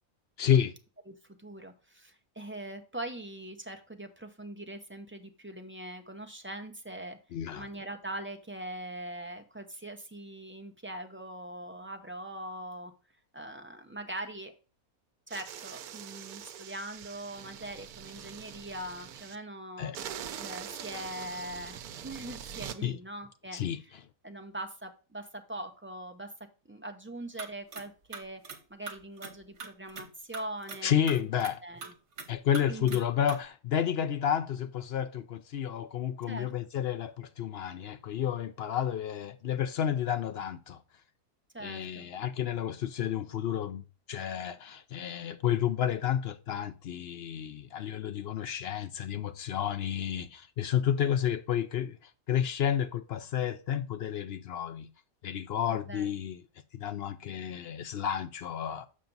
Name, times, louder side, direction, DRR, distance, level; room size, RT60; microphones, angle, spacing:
voice 1, 0.4-0.7 7.3-7.7 19.8-20.0 22.8-23.0 23.5-23.8 30.8-31.6 32.3-40.8 41.6-52.0 52.3-54.9 55.2-56.4 56.7-58.9, left 9 dB, 65° left, 0.6 m, -31 dB
voice 2, 1.1-7.2 7.6-12.9 13.3-14.5 15.3-19.9 20.4-23.9 24.2-26.3 26.7-31.0 31.6-31.9 32.7-33.0 36.3-36.5 41.5-42.1 55.7-56.1, right 1 dB, 15° right, 0.5 m, -42 dB
sound 1, 15.3-19.4 19.9-22.8, right 9 dB, 85° right, 1.2 m, -43 dB
sound 2, 27.4-27.8 28.1-28.6 28.9-30.1 30.3-30.8 31.1-31.5 31.8-32.3 32.5-33.0 33.3-33.4, right 5 dB, 55° right, 1.4 m, -41 dB
7.3 x 5.8 x 3.9 m
omnidirectional pair, 1.5 m